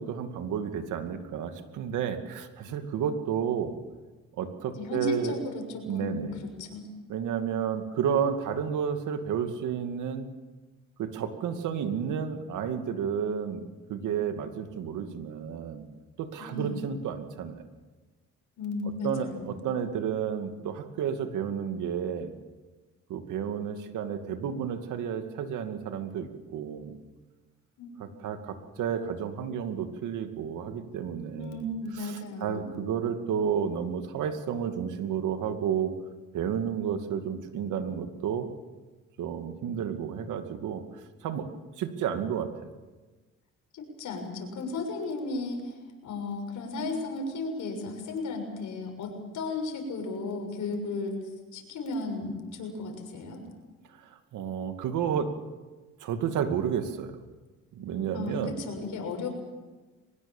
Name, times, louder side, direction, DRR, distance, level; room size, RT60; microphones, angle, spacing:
voice 1, 0.0-3.8 4.4-5.3 5.9-6.4 7.1-10.3 11.0-15.8 16.2-17.7 19.0-22.3 23.1-27.0 28.0-31.7 32.0-35.9 36.3-38.5 39.2-41.5 41.8-42.7 53.9-55.3 56.0-57.2 57.7-58.6, right 8 dB, 85° right, 7 dB, 2.4 m, -31 dB
voice 2, 4.8-6.8 16.4-16.9 18.6-19.6 27.8-28.0 31.4-32.8 43.7-45.8 46.0-51.2 51.5-53.4 58.1-59.3, left 2 dB, 75° left, 3 dB, 6.6 m, -34 dB
23.5 x 20.5 x 7.3 m, 1.3 s
cardioid pair, 90°, 30 cm